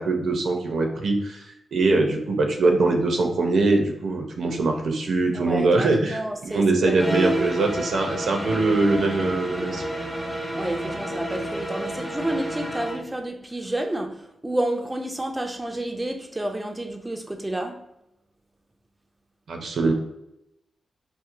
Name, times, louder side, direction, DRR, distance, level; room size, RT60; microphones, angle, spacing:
voice 1, 0.0-9.8 19.5-19.9, right 3 dB, 75° right, 0.5 m, -22 dB
voice 2, 5.3-7.1 10.6-17.8, right 1 dB, 15° right, 0.4 m, -30 dB
sound 1, 6.9-13.1, right 1 dB, 15° left, 0.9 m, -30 dB
2.9 x 2.0 x 2.4 m
cardioid pair, 55°, 0 cm